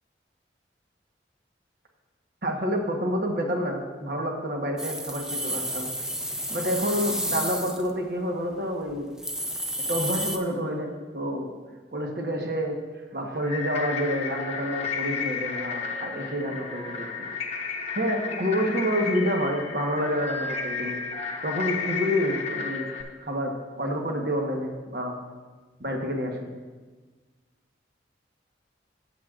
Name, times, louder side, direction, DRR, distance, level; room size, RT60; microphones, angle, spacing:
voice 1, 2.4-5.9 6.5-9.1 9.9-11.5 11.9-12.8 13.1-17.1 17.9-21.0 21.4-22.9 23.2-25.1 25.8-26.5, equal, 55° right, 1 dB, 1.1 m, -28 dB
sound 1, 4.8-7.9 8.5-8.6 8.9-9.0 9.2-10.4, right 1 dB, 5° right, 0.4 m, -31 dB
sound 2, 13.4-23.0, left 5 dB, 35° left, 0.9 m, -33 dB
14.0 x 8.2 x 2.4 m, 1.4 s
head